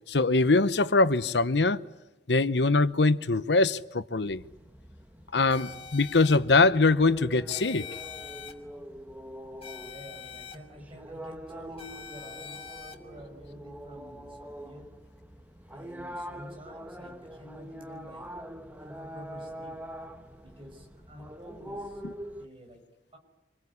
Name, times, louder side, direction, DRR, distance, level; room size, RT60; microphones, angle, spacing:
voice 1, 0.1-1.8 2.3-4.4 5.3-7.8, left 3 dB, 75° left, 0.9 m, -23 dB
sound 1, 4.2-22.5, equal, 10° right, 1.2 m, -44 dB
voice 2, 5.3-5.7 6.2-6.4 9.8-14.9 15.7-18.3 18.8-19.8 20.4-22.0 22.3-22.8 23.1-23.2, equal, 30° right, 6.0 m, -49 dB
sound 2, 5.5-6.4 7.5-8.5 9.6-10.5 11.8-12.9, left 7 dB, 35° left, 2.8 m, -43 dB
26.0 x 22.0 x 9.7 m
head